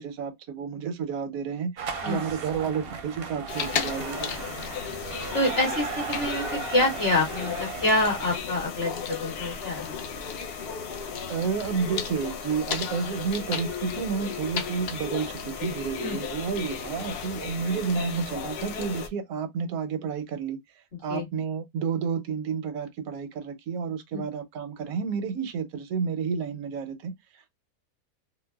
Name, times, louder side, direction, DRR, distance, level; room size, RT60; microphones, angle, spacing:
voice 1, 0.0-4.3 11.3-20.6 21.0-27.5, right 6 dB, 85° right, 1.1 m, -31 dB
sound 1, 1.8-8.4, right 5 dB, 55° right, 0.7 m, -36 dB
sound 2, 3.5-19.1, left 6 dB, 65° left, 0.6 m, -34 dB
voice 2, 5.3-10.0 16.0-16.2 21.1-21.2 24.1-24.2, left 1 dB, 45° left, 1.8 m, -26 dB
3.8 x 2.1 x 2.2 m
omnidirectional pair, 1.5 m